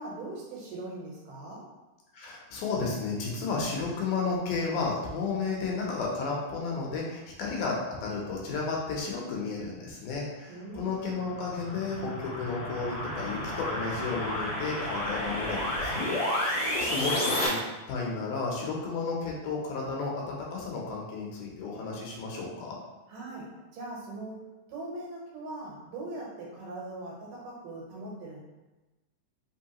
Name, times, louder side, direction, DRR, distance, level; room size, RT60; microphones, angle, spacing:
voice 1, 0.0-1.6 10.5-11.2 16.5-17.4 23.1-28.4, right 2 dB, 85° right, -3 dB, 2.7 m, -41 dB
voice 2, 2.1-16.2 16.7-17.6 17.9-22.8, left 4 dB, 75° left, -2 dB, 2.2 m, -33 dB
sound 1, 11.0-17.5, left 1 dB, 45° left, 1.5 m, -31 dB
5.5 x 3.0 x 2.9 m, 1.1 s
omnidirectional pair, 3.7 m